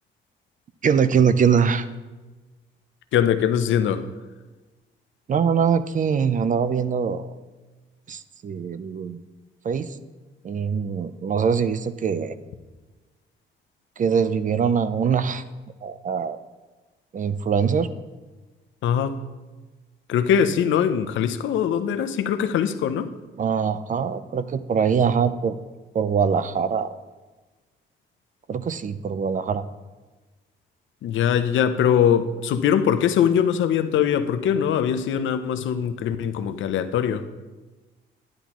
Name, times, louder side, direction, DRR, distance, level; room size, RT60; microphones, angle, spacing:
voice 1, 0.8-1.9 5.3-7.4 8.1-9.2 9.6-10.0 10.4-12.3 14.0-15.4 15.8-16.4 17.1-17.9 23.4-25.6 25.9-26.9 28.5-29.6, right 6 dB, 40° right, 0.5 m, -23 dB
voice 2, 3.1-4.1 18.8-19.2 20.1-23.1 31.0-37.3, left 8 dB, 75° left, 0.6 m, -22 dB
10.5 x 9.8 x 3.1 m
cardioid pair, 90°, 20 cm